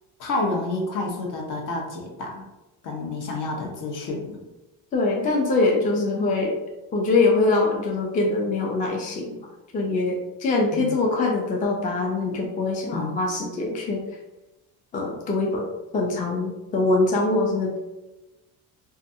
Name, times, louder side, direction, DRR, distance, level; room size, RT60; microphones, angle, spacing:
voice 1, 0.2-2.4 2.8-4.4 10.7-10.9 12.9-13.2, left 2 dB, 50° left, 0 dB, 0.8 m, -29 dB
voice 2, 4.9-6.6 6.9-9.4 9.7-14.1 14.9-17.8, left 3 dB, 20° left, -1 dB, 0.3 m, -23 dB
2.4 x 2.3 x 2.6 m, 1.0 s
cardioid pair, 115°, 40 cm